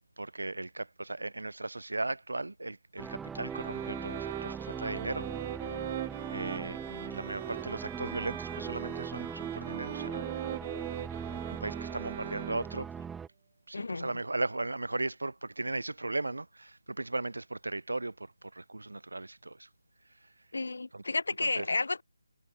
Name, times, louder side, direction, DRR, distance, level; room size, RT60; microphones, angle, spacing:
voice 1, 0.2-5.8 6.3-10.3 10.9-12.9 13.7-19.7 20.2-20.3 20.9-21.0 21.4-21.7, right 2 dB, 80° right, 2.8 m, -37 dB
sound 1, 3.0-13.3, right 6 dB, 5° right, 1.0 m, -40 dB
sound 2, 3.5-12.9, right 11 dB, 30° right, 5.9 m, -41 dB
voice 2, 13.7-14.1 20.5-22.0, left 3 dB, 70° left, 4.1 m, -32 dB
figure-of-eight pair, 155°, 0 cm